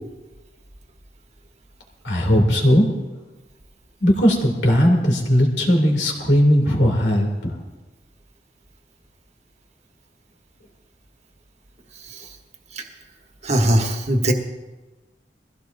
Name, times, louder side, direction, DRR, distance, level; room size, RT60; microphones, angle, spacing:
voice 1, 2.0-2.9 4.0-7.5, equal, 85° left, 0 dB, 2.8 m, -18 dB
voice 2, 13.4-14.3, right 1 dB, 40° right, 3 dB, 1.5 m, -20 dB
22.0 x 15.5 x 2.7 m, 1.2 s
head